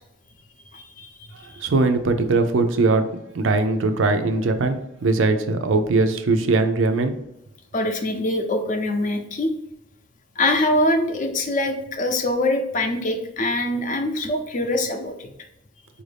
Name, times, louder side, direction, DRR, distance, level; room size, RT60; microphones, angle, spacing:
voice 1, 0.7-1.7 7.7-9.5 10.4-15.3, left 1 dB, 45° left, 5 dB, 0.5 m, -24 dB
voice 2, 1.4-3.1 3.3-7.1, right 3 dB, 85° right, 7 dB, 0.5 m, -20 dB
4.3 x 2.6 x 3.3 m, 0.82 s
head